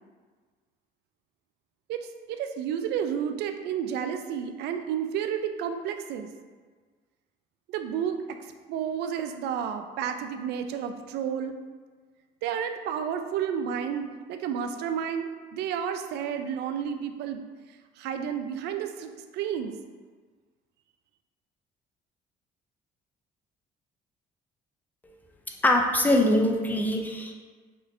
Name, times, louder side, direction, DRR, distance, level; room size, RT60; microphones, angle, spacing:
voice 1, 1.9-6.3 7.7-8.4 8.7-11.6 12.4-17.4 18.0-19.7, right 8 dB, 80° right, 7 dB, 0.4 m, -31 dB
voice 2, 25.6-27.3, left 1 dB, 10° left, 1 dB, 0.5 m, -23 dB
6.0 x 2.5 x 2.6 m, 1.5 s
cardioid pair, 110°, 17 cm